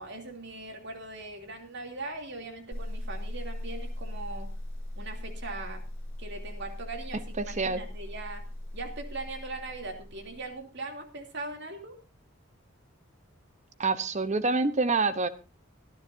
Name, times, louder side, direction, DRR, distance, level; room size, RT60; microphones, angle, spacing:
voice 1, 0.0-4.5 5.0-5.8 6.2-8.4 8.7-12.0, right 2 dB, 60° right, 4 dB, 2.9 m, -40 dB
sound 1, 2.7-10.5, left 1 dB, 65° left, 3.8 m, -39 dB
voice 2, 7.4-7.8 13.8-15.3, right 3 dB, 35° right, 13 dB, 0.9 m, -26 dB
25.5 x 10.5 x 2.7 m, 0.31 s
head